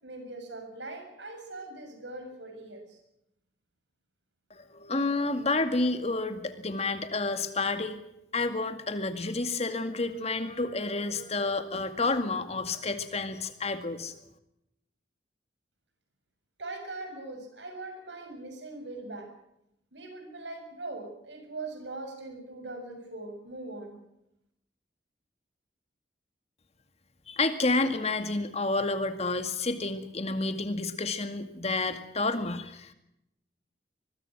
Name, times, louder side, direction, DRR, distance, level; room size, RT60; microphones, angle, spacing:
voice 1, 0.0-3.0 16.6-19.3 19.9-24.0, right 2 dB, 75° right, 5 dB, 6.6 m, -41 dB
voice 2, 4.5-8.0 8.3-14.1 27.3-32.9, left 3 dB, 35° left, 9 dB, 2.1 m, -30 dB
24.5 x 21.5 x 6.2 m, 0.81 s
head